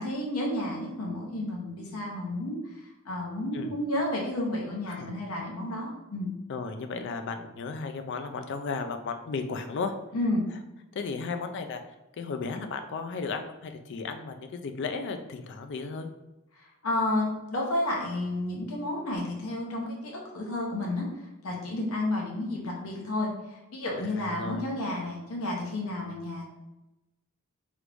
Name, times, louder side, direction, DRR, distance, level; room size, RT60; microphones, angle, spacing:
voice 1, 0.0-2.6 3.1-6.3 10.1-10.4 16.8-21.1 21.4-23.3 23.7-26.5, left 1 dB, 70° left, -1 dB, 0.9 m, -31 dB
voice 2, 4.9-5.2 6.5-9.9 10.9-11.8 12.2-16.1 24.0-24.7, left 4 dB, 55° left, 7 dB, 0.4 m, -35 dB
3.1 x 2.5 x 3.3 m, 0.97 s
head